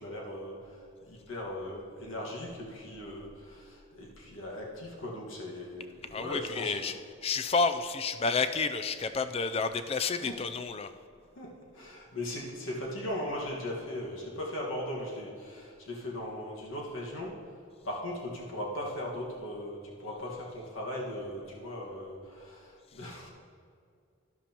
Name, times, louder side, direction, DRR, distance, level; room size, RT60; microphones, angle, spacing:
voice 1, 0.0-6.9 10.1-10.3 11.4-17.3 17.8-23.3, left 1 dB, 70° left, -3 dB, 1.7 m, -38 dB
voice 2, 6.1-6.9 7.2-10.9, left 4 dB, 30° left, 10 dB, 0.4 m, -30 dB
12.5 x 11.5 x 3.0 m, 2.3 s
head